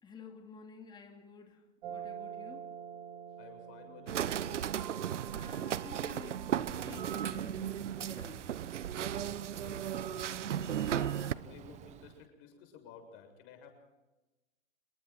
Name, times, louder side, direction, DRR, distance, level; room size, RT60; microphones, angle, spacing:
voice 1, 0.0-2.7 4.9-8.5 10.8-11.5, left 5 dB, 10° left, 3 dB, 2.6 m, -52 dB
sound 1, 1.8-7.0, right 8 dB, 50° right, 3.3 m, -47 dB
voice 2, 3.4-4.7 9.3-13.7, left 6 dB, 30° left, 5 dB, 7.1 m, -55 dB
sound 2, 4.1-11.3, right 10 dB, 70° right, 1.0 m, -35 dB
Bird, 6.4-12.3, right 9 dB, 20° right, 1.0 m, -49 dB
28.0 x 22.0 x 4.5 m, 1.1 s
hypercardioid pair, 135°, 38 cm